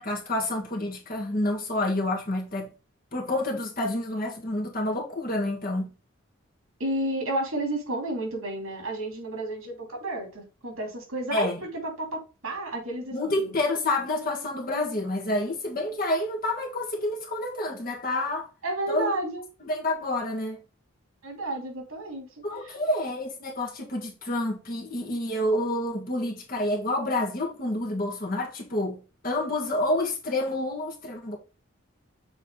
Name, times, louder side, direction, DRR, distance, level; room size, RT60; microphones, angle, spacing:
voice 1, 0.0-2.7 3.1-5.9 11.3-11.6 13.1-18.5 18.9-19.1 19.6-20.6 22.4-31.4, left 1 dB, 45° left, 1.7 m, -28 dB
voice 2, 6.8-11.5 11.8-13.5 18.6-19.4 21.2-22.4, right 1 dB, 85° right, 2.8 m, -31 dB
6.8 x 4.0 x 3.8 m
head